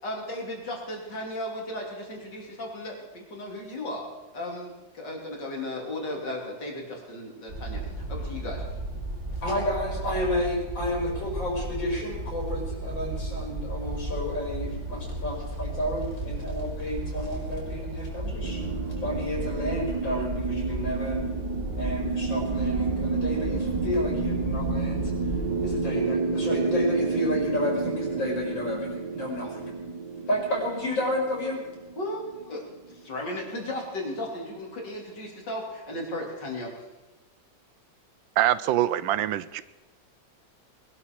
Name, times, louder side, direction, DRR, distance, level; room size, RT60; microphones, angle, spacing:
voice 1, 0.0-4.1 4.3-8.8 32.0-36.7, left 1 dB, 65° left, 0 dB, 3.7 m, -35 dB
sound 1, 7.5-25.8, right 1 dB, 35° right, 3.9 m, -34 dB
voice 2, 9.4-18.6 19.0-21.2 21.8-25.4 25.6-29.7 30.3-31.6, left 1 dB, 85° left, -3 dB, 5.4 m, -31 dB
sound 2, 18.4-33.0, right 4 dB, 70° right, 1.9 m, -30 dB
voice 3, 38.4-39.6, right 13 dB, 90° right, 16 dB, 1.4 m, -24 dB
20.5 x 12.5 x 4.6 m, 1.1 s
omnidirectional pair, 2.0 m